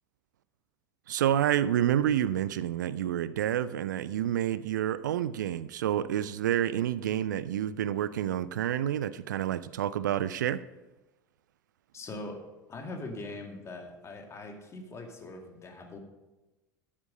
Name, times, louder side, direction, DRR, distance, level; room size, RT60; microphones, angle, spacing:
voice 1, 1.1-10.6, right 11 dB, 75° right, 0.4 m, -29 dB
voice 2, 11.9-12.4 12.7-16.0, left 2 dB, 30° left, 2.3 m, -41 dB
12.5 x 7.4 x 5.3 m
figure-of-eight pair, 70°, 10 cm